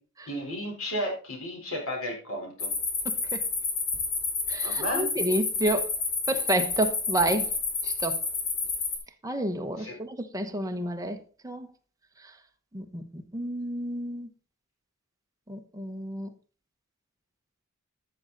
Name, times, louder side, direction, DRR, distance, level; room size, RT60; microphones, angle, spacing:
voice 1, 0.3-2.7 4.6-5.1 9.8-10.0, equal, 70° left, 4.2 m, -33 dB
sound 1, 2.6-9.0, left 4 dB, 50° left, 2.8 m, -30 dB
voice 2, 3.0-3.4 4.5-5.9 6.3-7.5 7.8-8.2 9.2-11.7 12.7-14.3 15.5-16.3, right 1 dB, 15° right, 1.0 m, -30 dB
13.5 x 6.5 x 4.0 m
head